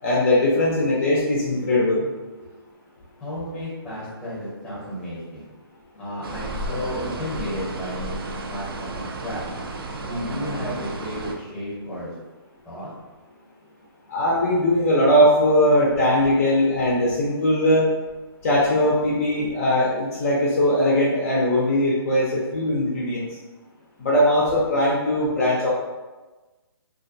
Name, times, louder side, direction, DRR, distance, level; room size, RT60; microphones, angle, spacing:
voice 1, 0.0-2.1 14.1-17.9 18.4-23.2 24.0-25.7, left 1 dB, 35° left, -5 dB, 0.5 m, -20 dB
voice 2, 3.2-5.4 6.0-9.6 10.0-12.2 12.6-12.9, equal, 5° left, -8 dB, 0.8 m, -32 dB
sound 1, 6.2-11.3, right 2 dB, 65° right, 0.4 m, -33 dB
2.4 x 2.1 x 2.5 m, 1.2 s
hypercardioid pair, 150°, 13 cm